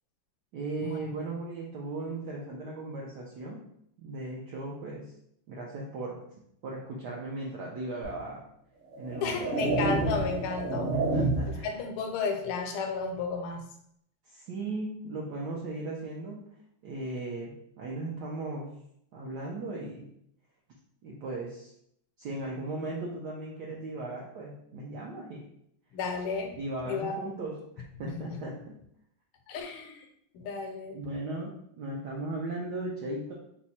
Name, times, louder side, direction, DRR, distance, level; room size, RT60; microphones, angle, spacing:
voice 1, 0.5-3.6 4.0-5.1 5.5-6.2 6.6-8.4 9.0-9.5 10.9-11.8 14.2-16.4 16.8-18.8 19.1-20.1 21.0-21.7 22.2-25.5 26.6-27.6 28.0-28.8 30.9-33.3, right 2 dB, 75° right, -2 dB, 0.9 m, -37 dB
sound 1, 8.0-8.2 8.9-11.7, right 2 dB, 50° right, 0.9 m, -29 dB
voice 2, 9.2-10.9 11.5-13.6 25.9-26.6 26.8-27.5 28.0-28.4 29.5-30.1 30.3-31.0, left 4 dB, 80° left, 5 dB, 1.5 m, -33 dB
4.4 x 2.1 x 4.1 m, 0.74 s
omnidirectional pair, 2.4 m